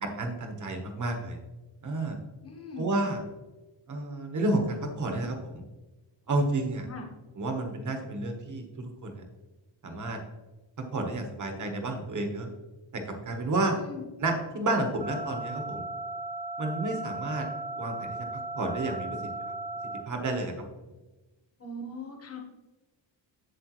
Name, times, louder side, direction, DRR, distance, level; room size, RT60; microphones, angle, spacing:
voice 1, 0.0-1.4 1.8-2.2 2.8-3.2 3.9-5.6 6.3-6.9 7.3-9.2 9.8-10.2 10.9-12.5 12.9-13.8 14.2-15.9 16.6-17.4 17.8-18.3 18.6-19.5 20.0-20.5, right 2 dB, 40° right, 4 dB, 1.2 m, -31 dB
voice 2, 2.4-2.9 6.8-7.0 13.7-14.0 21.6-22.4, left 1 dB, 30° left, 2 dB, 1.3 m, -40 dB
sound 1, 15.0-20.0, right 2 dB, 20° right, 0.7 m, -36 dB
7.9 x 7.4 x 3.1 m, 1.1 s
wide cardioid pair, 180°, 46 cm